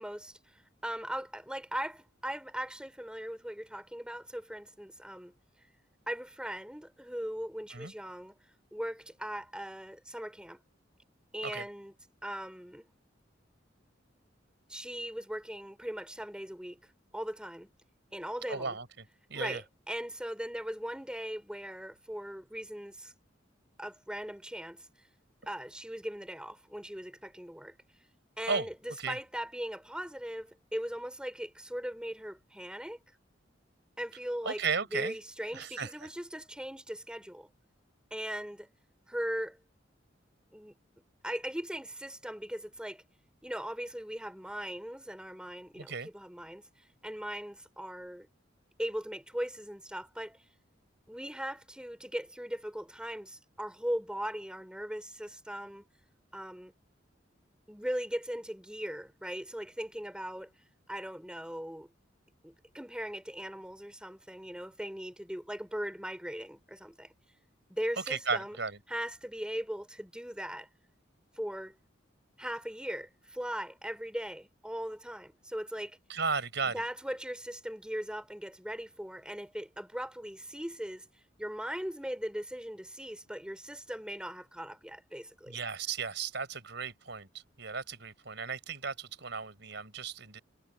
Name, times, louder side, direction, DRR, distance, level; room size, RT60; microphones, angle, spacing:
voice 1, 0.0-5.3 6.1-8.3 8.7-10.6 11.3-11.9 12.2-12.9 14.7-17.7 18.1-18.8 19.3-23.1 23.8-24.8 25.5-27.7 28.4-33.0 34.0-34.6 34.9-37.5 38.1-38.7 39.1-39.6 40.5-40.7 41.2-43.0 43.4-46.7 47.0-48.3 48.8-50.4 51.1-55.9 56.3-56.7 57.7-60.5 60.9-61.9 62.4-67.1 67.7-68.6 68.9-70.7 71.4-71.7 72.4-76.0 76.6-81.1 81.4-85.6, equal, 5° right, 4.9 m, -39 dB
voice 2, 18.5-18.9 19.3-19.6 28.5-28.7 29.0-29.2 34.4-35.2 35.5-36.1 45.8-46.1 68.1-68.8 76.1-76.8 85.5-87.3 87.6-90.4, right 5 dB, 65° right, 5.5 m, -35 dB
head